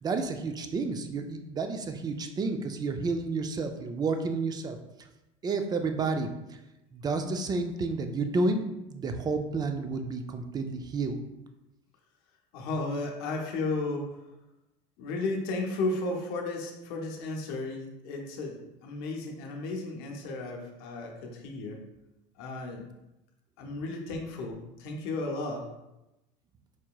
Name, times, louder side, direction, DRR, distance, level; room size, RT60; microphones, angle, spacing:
voice 1, 0.0-4.8 5.4-6.3 6.9-11.2, right 3 dB, 25° right, 6 dB, 0.4 m, -30 dB
voice 2, 12.5-14.2 15.0-21.8 22.4-22.8 23.6-25.7, left 2 dB, 75° left, 1 dB, 0.7 m, -34 dB
4.6 x 2.8 x 2.3 m, 0.94 s
supercardioid pair, 115°, 16 cm